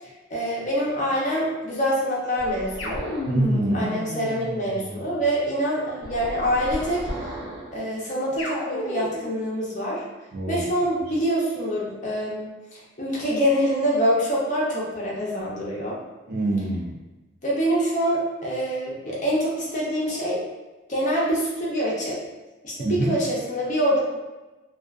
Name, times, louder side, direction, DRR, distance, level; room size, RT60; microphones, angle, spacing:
voice 1, 0.0-3.0 3.7-7.0 7.7-10.0 10.5-16.0 17.4-20.4 20.9-22.2 22.6-24.0, equal, 40° left, -5 dB, 0.6 m, -25 dB
sound 1, 2.4-3.4 6.0-7.8, right 1 dB, 70° right, 0.8 m, -35 dB
sound 2, 2.8-5.3 8.4-9.4, left 1 dB, 85° left, 0.5 m, -32 dB
voice 2, 3.3-3.9 10.3-10.7 16.3-17.0 22.8-23.2, right 2 dB, 50° right, 0 dB, 0.3 m, -25 dB
2.4 x 2.3 x 2.3 m, 1.1 s
head